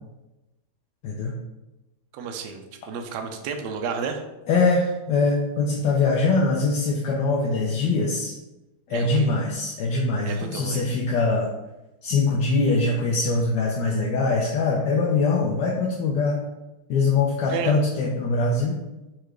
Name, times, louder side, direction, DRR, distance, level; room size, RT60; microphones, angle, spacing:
voice 1, 1.0-1.4 4.5-8.3 8.9-11.5 12.0-16.4 16.9-18.8, left 3 dB, 70° left, -1 dB, 1.0 m, -22 dB
voice 2, 2.1-4.2 8.9-9.3 10.2-10.8 17.5-17.8, right 6 dB, 75° right, 4 dB, 1.0 m, -31 dB
4.5 x 2.4 x 4.7 m, 1.0 s
omnidirectional pair, 2.3 m